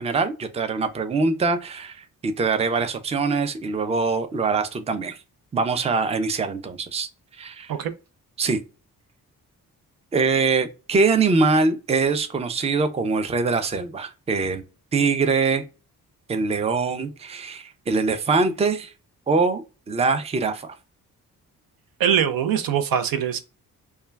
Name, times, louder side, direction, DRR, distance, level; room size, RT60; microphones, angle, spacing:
voice 1, 0.0-5.2 5.5-7.1 7.4-7.7 8.4-8.6 10.1-14.6 14.9-15.6 16.3-18.9 19.3-20.7, right 4 dB, 20° right, 0.4 m, -23 dB
voice 2, 22.0-23.4, right 9 dB, 75° right, 0.5 m, -22 dB
2.2 x 2.2 x 3.3 m
cardioid pair, 70°, 35 cm